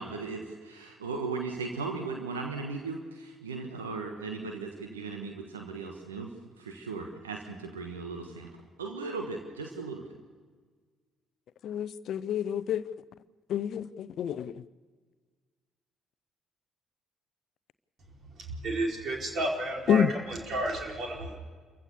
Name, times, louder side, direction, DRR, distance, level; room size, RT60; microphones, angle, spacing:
voice 1, 0.0-6.3 6.6-10.2, right 4 dB, 85° right, 3 dB, 1.3 m, -37 dB
voice 2, 11.6-12.8 13.5-14.6 19.9-20.1, left 9 dB, 60° left, 16 dB, 0.6 m, -28 dB
voice 3, 18.5-21.4, right 1 dB, 55° right, 0 dB, 4.8 m, -32 dB
28.0 x 15.5 x 6.9 m, 1.5 s
figure-of-eight pair, 45°, 0 cm